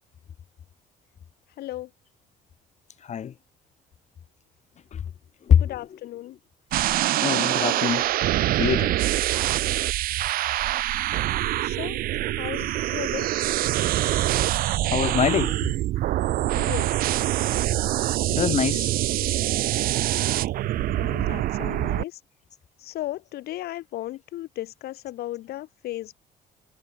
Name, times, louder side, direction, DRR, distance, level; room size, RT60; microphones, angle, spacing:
voice 1, 1.6-1.9 5.5-6.4 11.6-12.0 12.4-13.3 16.5-17.0 21.0-22.2 22.8-26.1, left 15 dB, 70° left, 1.1 m, -35 dB
voice 2, 3.0-3.3 4.9-5.0 5.5-5.7 7.2-8.1 8.6-9.0 14.3-14.4 14.9-15.6 18.3-18.9, left 8 dB, 45° left, 1.5 m, -24 dB
sound 1, 6.7-22.0, right 15 dB, 60° right, 0.4 m, -25 dB
cardioid pair, 110°, 17 cm